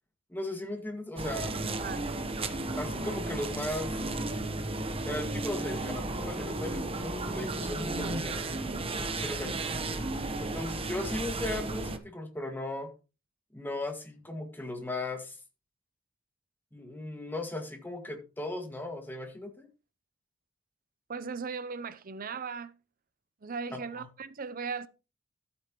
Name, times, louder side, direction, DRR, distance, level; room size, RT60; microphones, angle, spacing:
voice 1, 0.3-1.6 2.8-3.9 5.0-8.4 9.1-9.5 10.4-12.9 13.5-15.4 16.7-19.7 23.7-24.1, left 1 dB, 10° left, 1.9 m, -37 dB
sound 1, 1.2-12.0, right 2 dB, 30° right, 1.0 m, -34 dB
voice 2, 1.6-2.0 9.4-9.8 21.1-22.7 23.4-24.9, right 5 dB, 45° right, 0.6 m, -38 dB
13.0 x 8.5 x 3.0 m
head